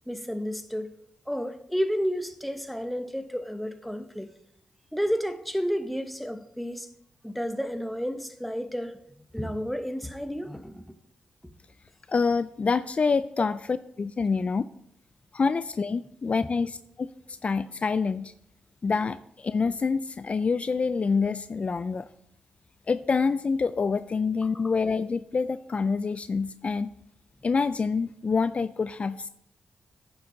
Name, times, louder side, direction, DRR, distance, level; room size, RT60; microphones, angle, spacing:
voice 1, 0.1-0.9 1.3-4.3 4.9-6.9 7.2-9.0 9.3-10.8 11.4-11.5 13.4-13.5, equal, ahead, 0.9 m, -31 dB
voice 2, 12.1-14.6 15.3-18.3 18.8-22.1 22.9-26.9 27.4-29.3, left 4 dB, 45° left, 0.3 m, -27 dB
9.9 x 7.1 x 3.9 m
cardioid pair, 65°, 3 cm